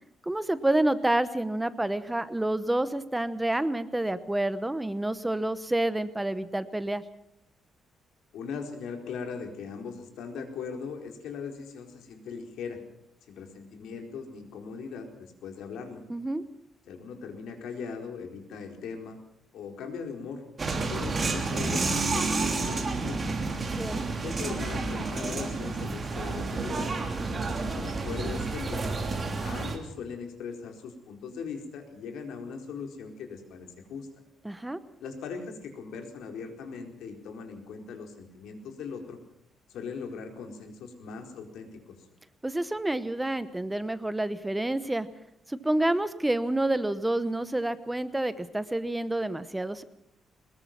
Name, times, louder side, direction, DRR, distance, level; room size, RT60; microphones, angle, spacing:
voice 1, 0.3-7.0 16.1-16.4 23.8-24.0 34.4-34.8 42.4-45.1 45.5-49.8, right 1 dB, 10° right, 13 dB, 0.9 m, -28 dB
voice 2, 8.3-12.8 13.3-16.0 16.9-19.2 19.5-20.4 20.9-23.2 24.2-26.9 27.3-29.0 29.4-34.1 35.0-39.2 39.7-42.0, left 5 dB, 80° left, 4 dB, 4.4 m, -39 dB
sound 1, 20.6-29.8, right 3 dB, 25° right, 3.2 m, -30 dB
22.5 x 21.0 x 6.0 m, 0.76 s
cardioid pair, 145°, 0 cm